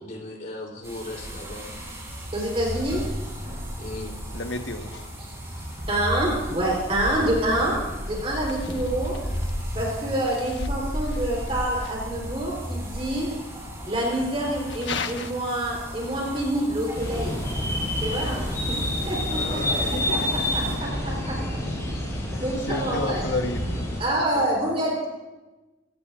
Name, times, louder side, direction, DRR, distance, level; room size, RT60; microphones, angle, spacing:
voice 1, 0.0-1.7 3.8-4.2 19.2-20.1, left 1 dB, 45° left, -1 dB, 3.4 m, -36 dB
sound 1, 0.8-20.8, equal, 15° right, 5.7 m, -34 dB
voice 2, 2.3-3.0 5.2-5.3 5.9-7.8 8.0-9.2 9.7-13.3 13.8-17.4 18.0-18.8 19.1-21.4 22.1-23.3 24.0-25.1, right 1 dB, 30° right, -2 dB, 3.8 m, -27 dB
voice 3, 4.3-5.1 5.7-5.9 8.7-8.8 9.5-9.6 10.6-10.7 11.1-11.2 11.8-11.9 14.8-15.3 19.5-21.6 21.9-22.0 22.3-23.8 24.3-24.7, left 3 dB, 75° left, 5 dB, 1.3 m, -33 dB
sound 2, 16.9-24.0, left 1 dB, 15° left, 5.6 m, -28 dB
26.5 x 16.5 x 2.5 m, 1.1 s
head